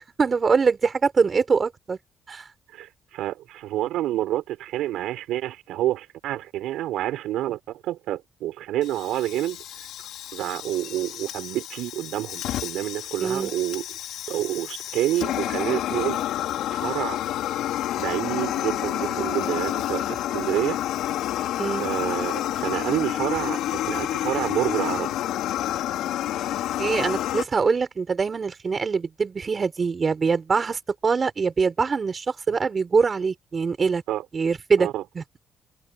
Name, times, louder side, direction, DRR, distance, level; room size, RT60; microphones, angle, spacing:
voice 1, 0.0-2.0 2.3-2.5 13.2-13.5 21.6-21.9 26.8-34.0 34.3-34.9 35.2-35.3, right 5 dB, 40° right, 5.2 m, -23 dB
voice 2, 2.7-9.9 10.3-13.8 14.3-16.2 16.7-17.2 18.0-20.8 21.8-25.2 34.1-34.2 34.8-35.0, right 14 dB, 90° right, 5.2 m, -28 dB
Fire, 8.8-27.4, left 12 dB, 85° left, 3.8 m, -29 dB
cardioid pair, 90°, 0 cm